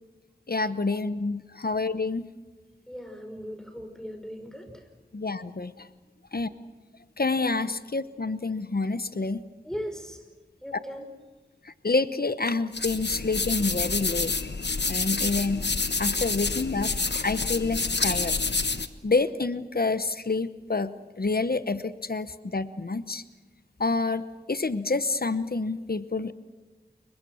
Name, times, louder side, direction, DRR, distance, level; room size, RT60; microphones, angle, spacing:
voice 1, 0.5-2.3 5.1-5.9 6.3-6.5 7.2-9.4 11.7-14.3 14.9-15.6 16.0-16.9 17.2-18.4 19.0-23.2 23.8-26.3, left 3 dB, 60° left, 13 dB, 0.9 m, -28 dB
voice 2, 2.9-4.6 9.6-10.2 10.6-11.1, equal, 5° left, 5 dB, 5.4 m, -38 dB
sound 1, 12.7-18.9, left 3 dB, 80° left, 1.2 m, -28 dB
30.0 x 23.5 x 6.3 m, 1.2 s
wide cardioid pair, 50°, 17 cm